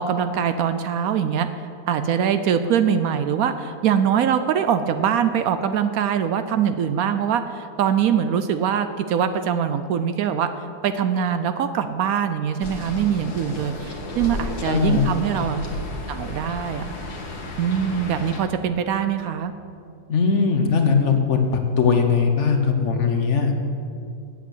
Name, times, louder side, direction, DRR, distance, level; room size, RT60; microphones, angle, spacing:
voice 1, 0.0-1.5 1.9-10.5 10.8-15.6 16.1-16.8 17.6-19.5, right 8 dB, 70° right, 10 dB, 1.0 m, -23 dB
sound 1, 12.6-18.4, left 1 dB, 75° left, 1.9 m, -33 dB
voice 2, 14.6-15.1 20.1-23.5, left 5 dB, 55° left, 5 dB, 1.1 m, -20 dB
8.4 x 8.2 x 8.0 m, 2.5 s
omnidirectional pair, 1.7 m